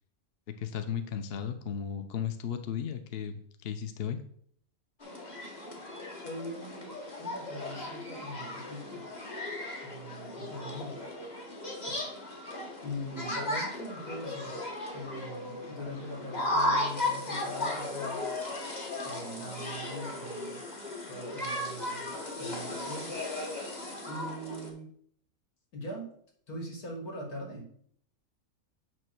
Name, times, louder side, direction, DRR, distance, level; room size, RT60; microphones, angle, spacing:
voice 1, 0.6-4.2, left 8 dB, 50° left, 9 dB, 0.8 m, -35 dB
sound 1, 5.0-24.7, left 1 dB, 30° left, 1.6 m, -36 dB
voice 2, 6.2-9.1 9.8-11.1 11.9-12.0 12.8-14.6 14.9-18.3 19.0-20.6 21.1-22.1 22.4-23.2 24.1-24.9 25.7-26.1 26.5-27.7, equal, 80° left, 0 dB, 2.8 m, -41 dB
9.1 x 3.2 x 6.0 m, 0.62 s
omnidirectional pair, 1.6 m